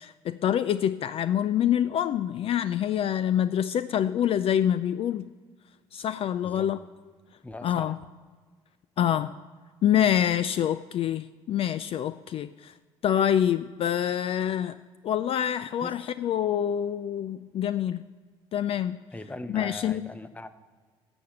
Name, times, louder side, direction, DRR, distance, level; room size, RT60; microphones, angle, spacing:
voice 1, 0.0-5.3 5.9-6.8 7.6-8.0 9.0-9.3 9.8-12.7 13.0-14.8 15.0-18.1 18.5-19.0 19.5-20.0, left 10 dB, 50° left, 13 dB, 0.4 m, -26 dB
voice 2, 7.4-8.0 15.8-16.0 19.1-20.5, left 1 dB, 10° left, 11 dB, 0.8 m, -40 dB
11.0 x 7.1 x 5.9 m, 1.5 s
supercardioid pair, 65°, 12 cm